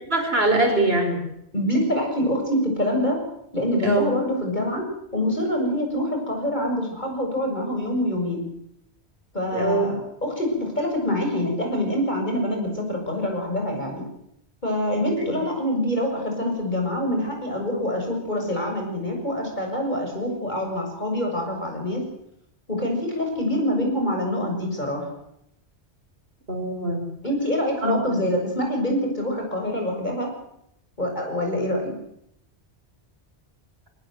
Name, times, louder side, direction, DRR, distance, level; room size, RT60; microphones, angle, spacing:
voice 1, 0.1-1.2 3.8-4.1 9.5-9.9 15.2-15.4 26.5-27.0 27.8-28.2, right 2 dB, 65° right, 4 dB, 5.1 m, -23 dB
voice 2, 1.5-3.2 3.5-4.8 5.1-8.4 9.3-14.0 14.6-22.0 22.7-25.1 27.2-30.3 31.0-31.9, left 1 dB, 45° left, 1 dB, 7.2 m, -25 dB
24.0 x 19.0 x 7.9 m, 0.76 s
omnidirectional pair, 1.1 m